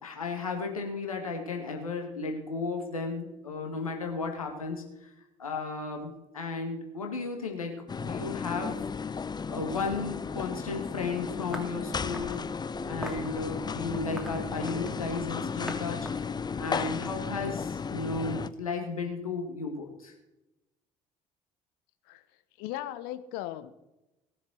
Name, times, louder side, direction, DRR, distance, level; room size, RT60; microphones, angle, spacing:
voice 1, 0.0-5.1 5.4-8.8 9.5-12.5 12.9-16.3 16.6-20.1, left 4 dB, 85° left, 2.0 m, -34 dB
sound 1, 7.9-18.5, left 5 dB, 25° left, 0.8 m, -34 dB
sound 2, 11.5-12.4 13.0-13.3 13.9-15.1 15.7-15.8 16.1-17.5, equal, 5° right, 3.4 m, -41 dB
voice 2, 22.6-23.7, left 13 dB, 65° left, 1.0 m, -37 dB
19.0 x 7.1 x 6.3 m
figure-of-eight pair, 55°, 18 cm